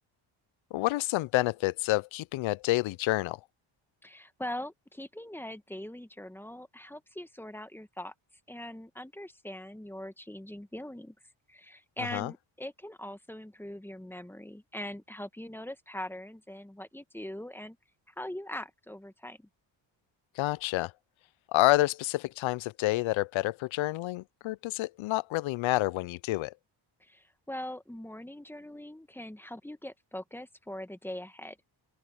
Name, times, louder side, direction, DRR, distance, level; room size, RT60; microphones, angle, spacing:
voice 1, 0.7-3.4 12.1-12.3 20.4-20.9 21.5-26.5, left 18 dB, 70° left, 0.6 m, -28 dB
voice 2, 4.0-8.1 8.5-11.1 11.5-17.8 18.2-19.5 27.0-31.6, left 1 dB, 5° left, 1.3 m, -41 dB
open air
cardioid pair, 85°, 48 cm